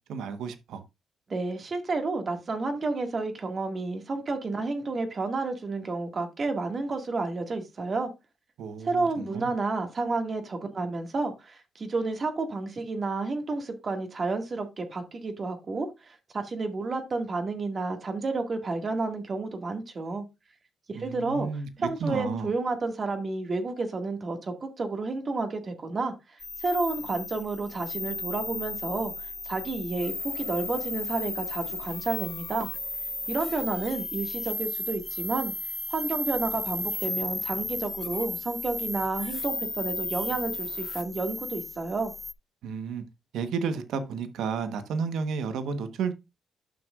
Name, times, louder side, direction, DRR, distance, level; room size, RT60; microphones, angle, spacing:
voice 1, 0.1-0.8 8.6-9.5 20.9-22.5 42.6-43.0 43.3-46.1, right 5 dB, 80° right, 1.1 m, -32 dB
voice 2, 1.3-8.1 8.8-20.2 20.9-21.5 21.8-26.1 26.6-29.1 29.4-32.7 33.3-35.5 35.9-42.1, right 3 dB, 40° right, 1.9 m, -31 dB
sound 1, 26.4-42.3, left 2 dB, 20° left, 0.4 m, -34 dB
11.5 x 6.2 x 2.4 m
cardioid pair, 90°, 0 cm